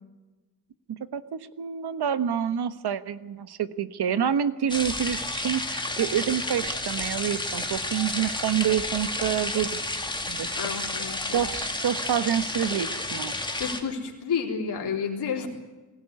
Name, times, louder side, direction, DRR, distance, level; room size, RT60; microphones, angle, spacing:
voice 1, 0.9-9.8 10.3-10.6 11.3-13.3, right 9 dB, 80° right, 12 dB, 1.4 m, -27 dB
sound 1, 4.7-13.8, left 2 dB, 10° left, 2.6 m, -31 dB
voice 2, 10.6-11.4 13.6-15.5, left 6 dB, 85° left, 0 dB, 3.8 m, -30 dB
22.5 x 17.0 x 9.6 m, 1.2 s
wide cardioid pair, 135°, 39 cm